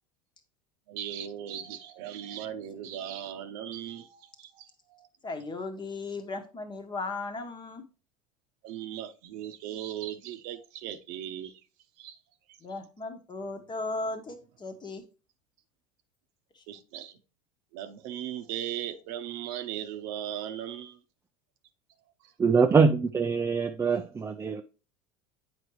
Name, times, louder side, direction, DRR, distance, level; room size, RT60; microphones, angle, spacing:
voice 1, 0.9-5.1 8.6-11.6 12.0-12.2 16.7-17.2 17.7-21.0, right 10 dB, 65° right, 0.8 m, -38 dB
voice 2, 5.2-7.8 12.6-15.0 16.6-16.7, left 3 dB, 25° left, 1.2 m, -36 dB
voice 3, 22.4-24.6, right 5 dB, 15° right, 0.4 m, -23 dB
7.9 x 4.8 x 3.1 m
hypercardioid pair, 90°, 17 cm